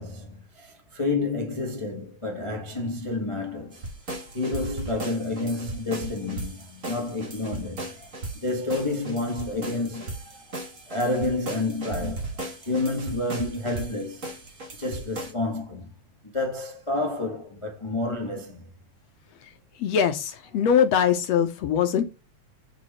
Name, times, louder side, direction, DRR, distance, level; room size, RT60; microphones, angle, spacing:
voice 1, 0.0-3.8 4.3-14.3 14.8-15.9 16.2-18.7, left 2 dB, 15° left, 1.1 m, -30 dB
sound 1, 3.7-15.3, right 2 dB, 30° right, 2.0 m, -37 dB
voice 2, 19.8-22.0, left 8 dB, 70° left, 1.9 m, -22 dB
8.3 x 4.8 x 4.3 m
omnidirectional pair, 3.3 m